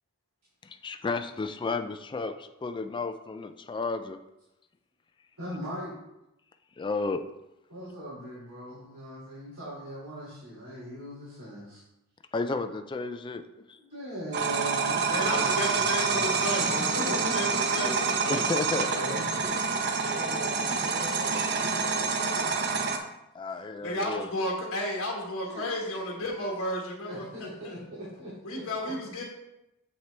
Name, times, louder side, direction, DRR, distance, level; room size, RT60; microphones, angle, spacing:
voice 1, 0.6-4.2 6.8-7.3 12.3-13.8 18.3-19.1 20.0-20.1 23.3-24.3, left 3 dB, 20° left, 8 dB, 0.3 m, -33 dB
voice 2, 5.4-5.9 7.7-11.8 13.8-16.3 16.6-17.9 18.3-19.7 20.1-22.7 25.4-25.7 27.1-28.9, equal, 80° right, -9 dB, 2.6 m, -40 dB
sound 1, 14.3-23.0, right 5 dB, 50° right, 0.7 m, -27 dB
voice 3, 15.1-18.4 23.8-27.7 28.4-29.2, left 1 dB, 65° left, -2 dB, 1.5 m, -33 dB
7.5 x 5.8 x 3.3 m, 0.89 s
head